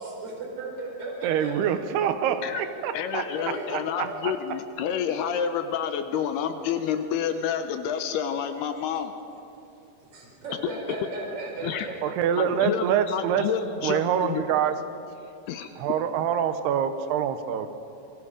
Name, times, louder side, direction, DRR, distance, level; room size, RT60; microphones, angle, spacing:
voice 1, 0.0-1.5 2.3-2.4 3.3-3.7 4.0-4.2 10.1-11.9, right 2 dB, 35° right, -2 dB, 5.3 m, -36 dB
voice 2, 1.2-3.2 3.7-4.3 12.0-13.5 13.8-14.8 15.8-17.7, right 8 dB, 75° right, 9 dB, 2.8 m, -25 dB
voice 3, 2.9-9.1 10.6-10.7 11.6-11.9 12.3-14.4 15.5-15.7, left 8 dB, 80° left, 8 dB, 2.6 m, -29 dB
27.5 x 22.5 x 5.1 m, 2.7 s
omnidirectional pair, 5.1 m